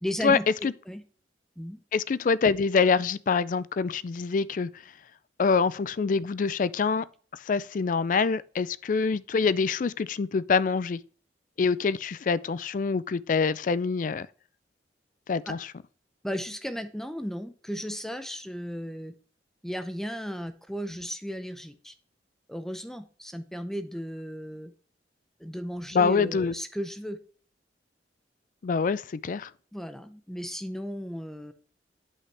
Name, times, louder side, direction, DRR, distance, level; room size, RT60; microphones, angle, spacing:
voice 1, 0.0-1.0 1.6-1.8 15.5-15.6 16.2-19.1 19.6-21.9 22.5-24.7 25.4-27.2 29.7-31.5, equal, ahead, 0.6 m, -35 dB
voice 2, 1.9-4.7 5.4-7.0 7.5-11.0 11.6-14.3 15.3-15.6 25.9-26.5 28.6-29.5, left 5 dB, 45° left, 0.4 m, -25 dB
8.5 x 5.6 x 3.3 m
head